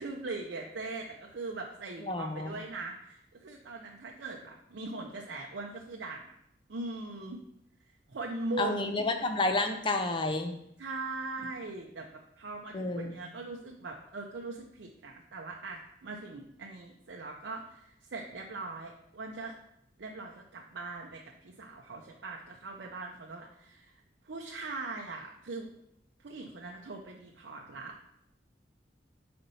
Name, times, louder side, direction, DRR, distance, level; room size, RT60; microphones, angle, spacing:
voice 1, 0.0-6.4 6.7-7.4 8.1-9.0 10.8-19.5 20.0-23.9 24.2-25.7 26.2-28.1, right 3 dB, 75° right, 0 dB, 0.6 m, -40 dB
voice 2, 2.1-2.6 8.6-10.6 12.7-13.2, left 2 dB, 25° left, 6 dB, 0.5 m, -30 dB
5.4 x 4.3 x 4.1 m, 0.77 s
head